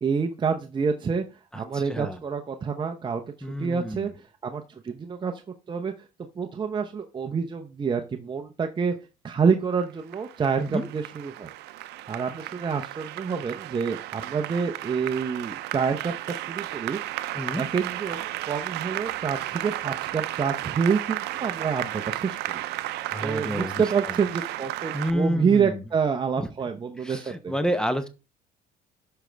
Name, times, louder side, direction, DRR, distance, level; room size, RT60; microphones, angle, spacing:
voice 1, 0.0-1.2 1.5-4.1 4.4-5.3 5.7-5.9 6.4-8.9 9.2-11.5 12.1-17.0 17.5-22.4 22.9-27.5, right 6 dB, 30° right, 5 dB, 0.7 m, -27 dB
voice 2, 1.5-2.2 3.4-4.1 10.6-10.9 17.3-17.6 23.1-24.1 24.9-25.8 26.4-26.5 27.0-28.1, equal, 5° left, 10 dB, 0.8 m, -29 dB
Applause, 9.8-25.1, right 15 dB, 80° right, 0.5 m, -34 dB
11.5 x 5.2 x 3.4 m, 0.31 s
cardioid pair, 110°, 17 cm